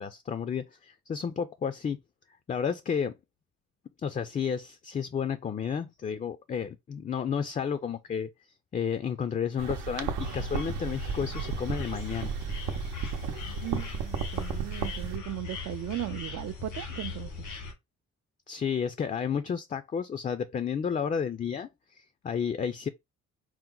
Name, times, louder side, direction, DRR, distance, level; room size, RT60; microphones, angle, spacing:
voice 1, 0.0-2.0 2.5-3.1 4.0-8.3 8.7-12.3 18.5-22.9, left 7 dB, 25° left, 0.4 m, -32 dB
sound 1, 9.6-15.2, right 6 dB, 90° right, 0.8 m, -34 dB
sound 2, 10.2-17.7, left 5 dB, 85° left, 1.6 m, -40 dB
voice 2, 13.4-17.5, right 15 dB, 60° right, 0.4 m, -37 dB
4.6 x 2.1 x 3.8 m
cardioid pair, 90°, 30 cm